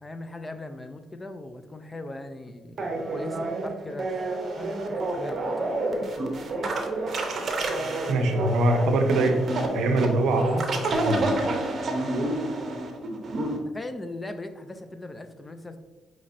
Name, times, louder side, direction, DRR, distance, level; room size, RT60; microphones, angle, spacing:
voice 1, 0.0-5.8 6.6-7.1 7.8-8.5 12.6-12.8 13.7-15.8, left 2 dB, 20° left, 8 dB, 0.4 m, -40 dB
sound 1, 2.8-13.6, right 2 dB, 50° right, 0.7 m, -29 dB
voice 2, 8.1-9.4 9.7-11.3, right 2 dB, 85° right, 5 dB, 0.6 m, -23 dB
5.4 x 3.1 x 2.5 m, 1.2 s
cardioid pair, 90°, 0 cm